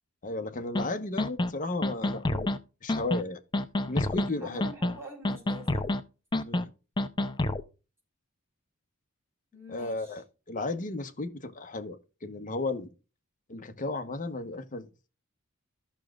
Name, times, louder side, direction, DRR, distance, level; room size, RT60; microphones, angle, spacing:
voice 1, 0.2-2.5 2.8-3.4 3.9-4.7 6.4-6.7 9.7-12.9 13.5-14.9, left 2 dB, 40° left, 1.0 m, -34 dB
sound 1, 0.8-0.9 1.2-1.5 1.8-2.6 2.9-3.2 3.5-4.3 4.6-5.0 5.3-6.0 6.3-6.7 7.0-7.6, left 1 dB, 20° left, 0.5 m, -28 dB
voice 2, 4.2-6.0 9.5-10.2, left 1 dB, 10° right, 4.7 m, -46 dB
14.0 x 6.3 x 2.4 m
head